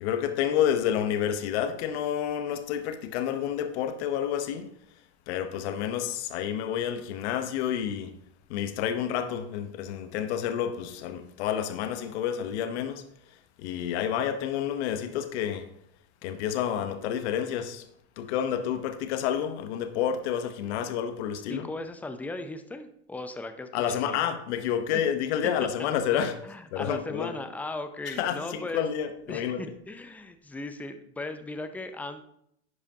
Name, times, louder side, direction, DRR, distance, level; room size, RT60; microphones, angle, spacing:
voice 1, 0.0-4.7 5.3-8.1 8.5-13.0 13.6-15.7 16.2-17.8 18.2-21.7 23.7-26.4 26.7-27.3 28.1-29.6, left 9 dB, 65° left, 0.8 m, -29 dB
voice 2, 21.5-24.2 24.9-25.0 26.1-28.8 29.3-32.2, left 2 dB, 5° left, 0.4 m, -37 dB
10.5 x 4.9 x 2.7 m
hypercardioid pair, 105°, 35 cm